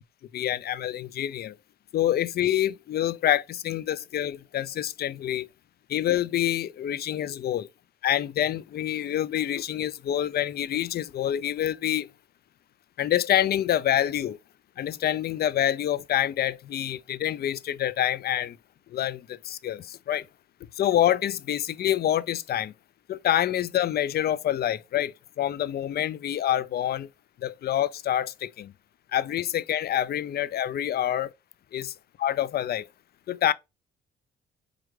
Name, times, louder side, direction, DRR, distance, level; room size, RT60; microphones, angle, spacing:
voice 1, 0.3-1.6 1.9-5.5 5.9-7.7 8.0-12.1 13.0-14.4 14.8-18.6 18.9-20.2 20.8-22.7 23.1-27.1 27.4-28.7 29.1-31.3 31.7-31.9 32.2-32.9 33.3-33.5, left 11 dB, 55° left, 0.4 m, -27 dB
4.6 x 2.4 x 3.0 m
cardioid pair, 90°, 20 cm